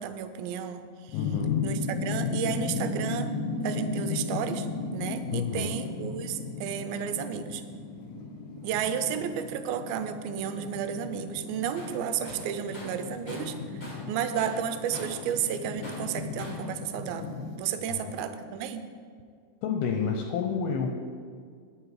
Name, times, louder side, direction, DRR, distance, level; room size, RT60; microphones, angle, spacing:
voice 1, 0.0-1.3 1.6-3.4 3.6-7.6 8.6-18.8, right 8 dB, 80° right, 9 dB, 2.2 m, -32 dB
voice 2, 1.1-1.6 5.3-5.8 17.9-18.1 19.6-21.0, left 6 dB, 80° left, 3 dB, 2.4 m, -30 dB
sound 1, 1.1-17.6, left 4 dB, 60° left, 2.0 m, -35 dB
Tools, 11.8-12.0 12.2-14.1 14.4-15.3 15.8-16.7, left 1 dB, 40° left, 0.8 m, -43 dB
9.8 x 9.1 x 4.8 m, 2.1 s
omnidirectional pair, 4.8 m